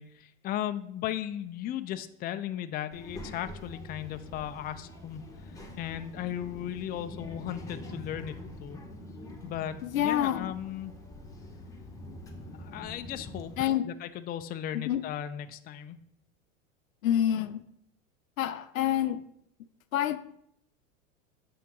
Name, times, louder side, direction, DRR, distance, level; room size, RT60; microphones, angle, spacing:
voice 1, 0.0-8.8 9.4-10.9 12.6-13.5 13.8-16.0, left 11 dB, 25° left, 0.4 m, -36 dB
Child speech kid speaking, 2.9-13.7, left 1 dB, 10° left, 1.3 m, -45 dB
voice 2, 9.8-10.5 13.6-13.9 14.7-15.0 17.0-17.6 18.4-19.2 19.9-20.2, left 11 dB, 85° left, 0.6 m, -27 dB
7.0 x 5.8 x 3.7 m
hypercardioid pair, 95°, 39 cm